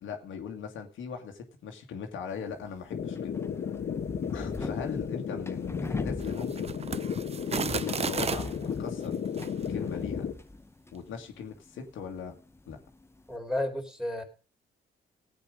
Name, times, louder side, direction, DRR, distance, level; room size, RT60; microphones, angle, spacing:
voice 1, 0.0-3.4 4.3-6.8 7.5-9.2 9.7-10.3 10.9-12.4 12.7-12.8, left 6 dB, 75° left, 3 dB, 2.1 m, -39 dB
sound 1, 2.3-13.4, left 2 dB, 10° left, 0.9 m, -43 dB
sound 2, 2.9-10.3, left 7 dB, 55° left, 1.5 m, -34 dB
unwrapping parcel, 6.2-8.6 9.3-9.5, right 6 dB, 30° right, 0.7 m, -34 dB
voice 2, 13.3-14.2, left 1 dB, 5° right, 3 dB, 3.4 m, -32 dB
16.0 x 8.2 x 5.1 m, 0.36 s
cardioid pair, 90°, 20 cm